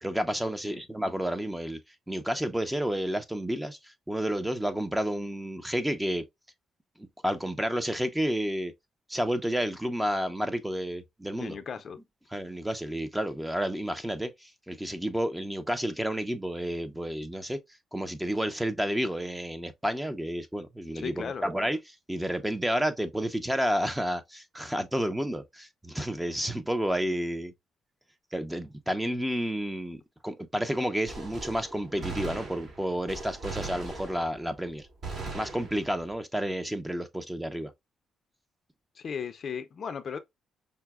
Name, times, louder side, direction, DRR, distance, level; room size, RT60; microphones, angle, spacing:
voice 1, 0.0-1.8 2.1-6.2 7.0-8.7 9.1-11.5 12.3-17.6 17.9-21.8 22.1-27.5 28.3-34.9 35.3-37.7, equal, 5° right, 0.5 m, -30 dB
voice 2, 11.4-12.0 20.9-21.5 39.0-40.2, left 7 dB, 50° left, 0.4 m, -36 dB
Gunshot gunfire, 31.1-34.6 35.0-36.1, right 3 dB, 50° right, 1.6 m, -39 dB
5.5 x 2.0 x 2.3 m
cardioid pair, 90°, 0 cm